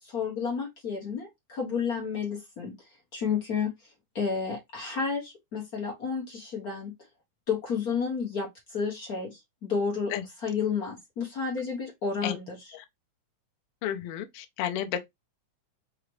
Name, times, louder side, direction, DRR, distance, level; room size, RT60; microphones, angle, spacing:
voice 1, 0.0-2.7 3.1-6.9 7.5-10.1 10.4-12.6, left 5 dB, 55° left, 1.0 m, -31 dB
voice 2, 13.8-15.0, left 10 dB, 80° left, 1.3 m, -32 dB
4.8 x 2.9 x 3.1 m
omnidirectional pair, 3.4 m